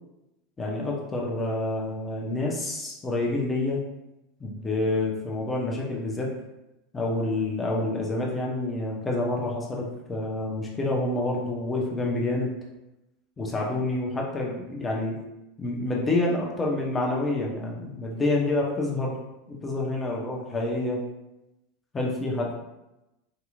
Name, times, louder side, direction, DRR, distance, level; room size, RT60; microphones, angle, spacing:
voice 1, 0.6-3.8 4.4-6.3 6.9-12.5 13.4-15.2 15.6-19.2 19.5-21.0 21.9-22.5, left 2 dB, 20° left, -2 dB, 0.8 m, -28 dB
3.8 x 2.9 x 2.3 m, 0.94 s
figure-of-eight pair, 80°, 0 cm